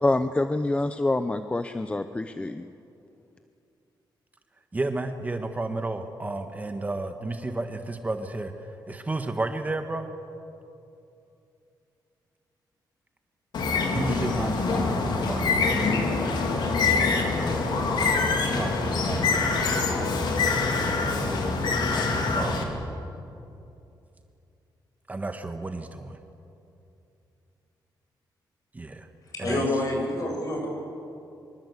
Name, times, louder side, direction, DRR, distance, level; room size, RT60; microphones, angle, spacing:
voice 1, 0.0-2.7, left 2 dB, 15° left, 10 dB, 0.7 m, -26 dB
voice 2, 4.7-8.5 8.9-10.1 13.9-16.0 17.1-17.7 18.4-21.3 22.3-22.8 25.1-26.2 28.7-29.1 29.4-29.6, right 2 dB, 20° right, 6 dB, 1.4 m, -33 dB
Bird, 13.5-22.6, left 3 dB, 70° left, 3.6 m, -25 dB
voice 3, 29.3-30.7, left 1 dB, 50° left, 1 dB, 7.5 m, -27 dB
25.0 x 24.5 x 8.3 m, 2.7 s
wide cardioid pair, 135°, 8 cm